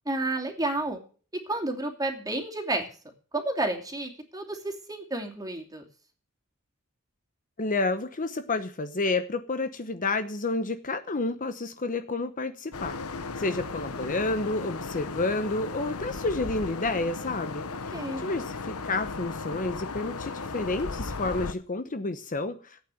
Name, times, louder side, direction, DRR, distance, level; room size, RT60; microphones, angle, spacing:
voice 1, 0.1-1.0 1.5-2.9 3.3-5.8 17.9-18.2, right 2 dB, 15° right, 2 dB, 2.7 m, -31 dB
voice 2, 7.6-13.0 13.4-22.8, left 3 dB, 35° left, 9 dB, 0.9 m, -30 dB
sound 1, 12.7-21.5, left 4 dB, 75° left, 1.1 m, -36 dB
15.0 x 8.9 x 7.7 m, 0.41 s
head